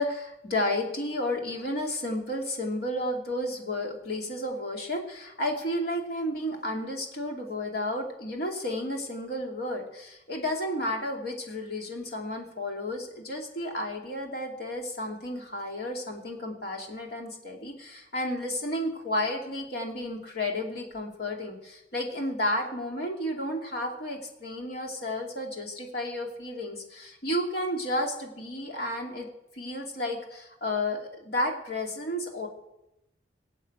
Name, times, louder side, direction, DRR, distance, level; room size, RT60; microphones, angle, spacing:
voice 1, 0.0-29.3 29.5-32.5, left 1 dB, 60° left, 2 dB, 2.7 m, -32 dB
20.0 x 8.2 x 7.9 m, 0.90 s
head